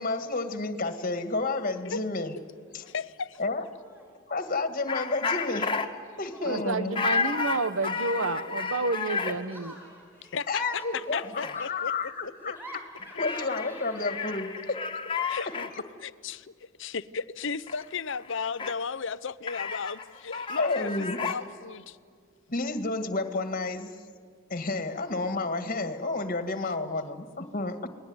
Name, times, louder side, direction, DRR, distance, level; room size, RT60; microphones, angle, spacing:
voice 1, 0.0-2.4 2.7-2.8 3.4-3.6 4.3-5.7 6.2-7.0 10.5-12.6 13.2-14.8 15.3-15.8 20.5-21.2 22.5-24.0 24.5-27.9, left 3 dB, 40° left, 9 dB, 1.9 m, -31 dB
Laughter, 1.6-2.0 2.3-2.9 3.3-4.2 5.5-7.0 7.7-14.6, right 1 dB, 10° right, 7.0 m, -51 dB
voice 2, 2.9-3.4 10.3-11.9 12.2-12.5 15.3-15.7 16.0-22.0, left 5 dB, 65° left, 16 dB, 0.8 m, -35 dB
sound 1, 4.9-5.9 6.9-9.4 10.7-10.8 11.0-11.6 13.0-15.7 17.7-17.8 18.1-18.7 19.5-21.4, left 5 dB, 25° left, 1.9 m, -32 dB
voice 3, 6.4-9.8, right 3 dB, 75° right, 13 dB, 1.3 m, -30 dB
29.5 x 20.0 x 9.6 m, 2.1 s
head